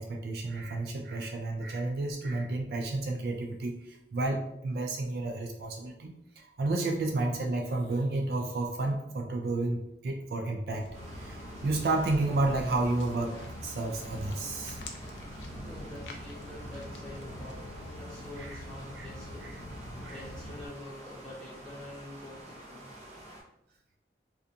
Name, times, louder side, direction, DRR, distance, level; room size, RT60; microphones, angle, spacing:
voice 1, 0.0-14.8 18.4-18.6 18.9-19.1 19.4-19.5 20.0-20.2, right 2 dB, 60° right, 2 dB, 0.3 m, -31 dB
Walk footsteps, 10.8-20.7, left 1 dB, 85° left, 0.4 m, -44 dB
sound 1, 10.9-23.4, right 1 dB, 40° right, 0.7 m, -47 dB
voice 2, 14.8-17.6 18.0-19.5 20.1-22.9, left 1 dB, 5° left, -8 dB, 0.8 m, -47 dB
2.7 x 2.3 x 2.5 m, 0.80 s
head